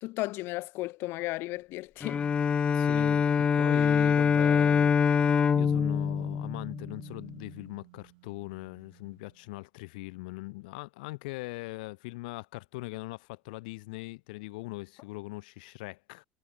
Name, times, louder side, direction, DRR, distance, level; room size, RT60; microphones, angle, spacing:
voice 1, 0.0-2.2, left 20 dB, 55° left, 1.3 m, -34 dB
Bowed string instrument, 2.0-7.3, left 7 dB, 20° left, 0.5 m, -25 dB
voice 2, 2.7-16.2, left 24 dB, 80° left, 2.1 m, -41 dB
sound 1, 5.5-9.4, right 25 dB, 75° right, 5.4 m, -49 dB
supercardioid pair, 140°, 5 cm